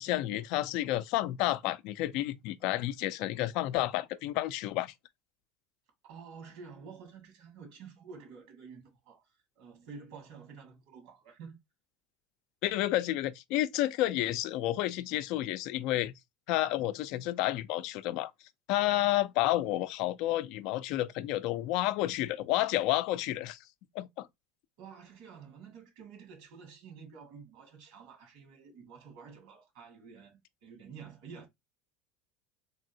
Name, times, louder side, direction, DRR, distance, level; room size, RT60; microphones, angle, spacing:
voice 1, 0.0-4.9 12.6-16.1 16.5-18.3 18.7-23.6 23.9-24.3, left 15 dB, 65° left, 0.3 m, -30 dB
voice 2, 6.0-11.6 24.8-31.5, right 6 dB, 75° right, 1.8 m, -50 dB
3.4 x 2.5 x 2.7 m
hypercardioid pair, 95°, 0 cm